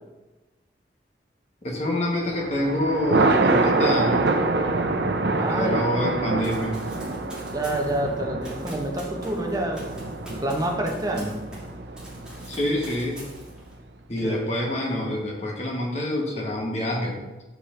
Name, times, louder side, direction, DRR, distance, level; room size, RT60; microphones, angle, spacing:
voice 1, 1.6-4.3 5.4-6.8 12.5-13.2 14.1-17.2, left 1 dB, 40° left, -1 dB, 1.3 m, -26 dB
Thunder, 2.3-13.6, right 3 dB, 75° right, 0.6 m, -26 dB
voice 2, 5.3-5.8 7.5-9.9 10.4-11.4 14.2-14.4, right 1 dB, 20° right, 0 dB, 0.9 m, -27 dB
Run, 6.4-11.7 12.0-13.7, right 1 dB, 5° right, 1.8 m, -44 dB
6.9 x 4.9 x 3.8 m, 1.1 s
head